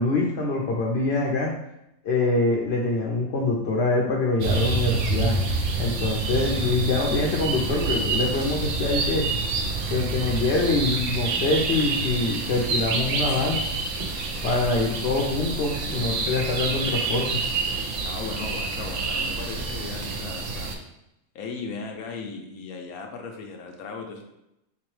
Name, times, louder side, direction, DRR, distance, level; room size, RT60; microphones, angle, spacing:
voice 1, 0.0-1.5 2.0-5.4 5.8-9.3 9.8-13.6 14.4-17.4, left 3 dB, 60° left, -1 dB, 0.7 m, -24 dB
sound 1, 4.4-20.8, right 3 dB, 70° right, 0.9 m, -27 dB
voice 2, 18.0-20.7 21.3-24.2, left 4 dB, 85° left, 2 dB, 1.1 m, -37 dB
3.6 x 2.9 x 3.1 m, 0.85 s
omnidirectional pair, 1.5 m